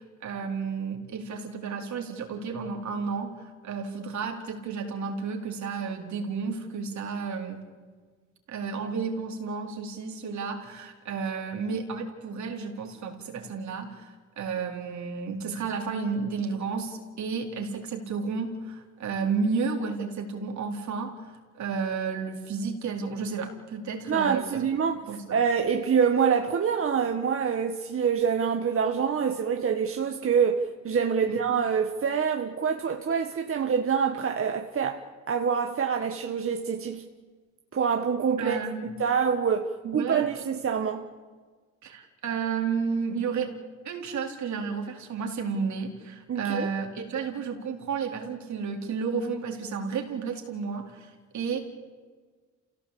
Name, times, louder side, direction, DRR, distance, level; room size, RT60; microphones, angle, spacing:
voice 1, 0.0-7.7 8.5-24.6 25.1-25.4 31.2-31.4 38.4-38.9 39.8-40.3 41.8-43.5 43.8-51.6, right 5 dB, 70° right, 4.2 m, -32 dB
voice 2, 24.1-25.0 25.3-37.1 37.7-38.6 39.0-41.0 46.3-46.7, right 6 dB, 45° right, 1.6 m, -26 dB
28.5 x 17.0 x 8.7 m
cardioid pair, 90°, 30 cm